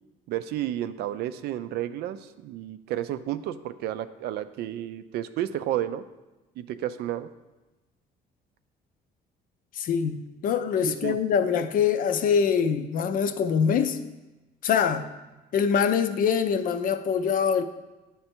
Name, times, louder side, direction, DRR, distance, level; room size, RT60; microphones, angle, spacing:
voice 1, 0.3-6.0 6.6-7.3 10.9-11.2, right 12 dB, 75° right, 12 dB, 0.4 m, -31 dB
voice 2, 9.8-14.0 14.6-15.1 15.5-17.6, left 7 dB, 55° left, 10 dB, 0.5 m, -24 dB
9.6 x 3.3 x 4.4 m, 1.1 s
cardioid pair, 110°, 17 cm